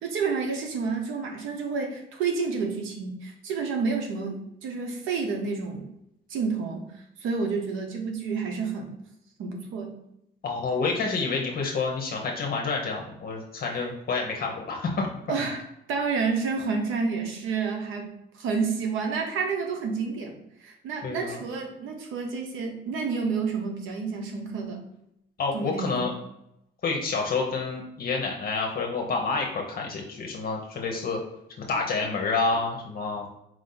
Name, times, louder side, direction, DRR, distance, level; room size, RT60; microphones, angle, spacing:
voice 1, 0.0-5.9 6.3-6.8 7.2-8.9 9.4-9.9 13.7-13.9 15.3-15.6 15.9-24.8 25.5-26.1, right 5 dB, 90° right, 3 dB, 0.9 m, -29 dB
voice 2, 10.4-15.1 21.0-21.4 25.4-26.1 26.8-31.2 31.6-33.3, left 4 dB, 50° left, 0 dB, 0.8 m, -28 dB
4.7 x 2.6 x 3.8 m, 0.80 s
cardioid pair, 90°, 20 cm